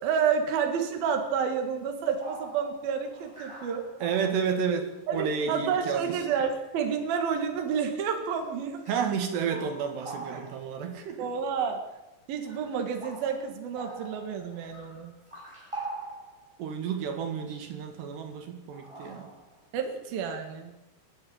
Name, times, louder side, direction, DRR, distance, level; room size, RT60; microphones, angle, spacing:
voice 1, 0.0-3.8 5.1-8.8 10.3-10.4 11.2-11.8 12.3-15.1 19.7-20.7, right 6 dB, 65° right, 4 dB, 3.7 m, -29 dB
sound 1, 1.9-2.0 2.2-4.9 5.8-5.9 6.1-6.7 7.5-7.8 8.3-8.4 8.8-9.2 9.5-10.9 11.9-12.0 12.4-16.6 16.9-17.2 17.5-17.7 18.7-19.6, right 2 dB, 5° right, 7.7 m, -44 dB
voice 2, 4.0-6.0 8.9-11.3 16.6-19.3, right 6 dB, 80° right, 5 dB, 4.3 m, -31 dB
27.5 x 12.0 x 8.9 m, 0.98 s
omnidirectional pair, 4.8 m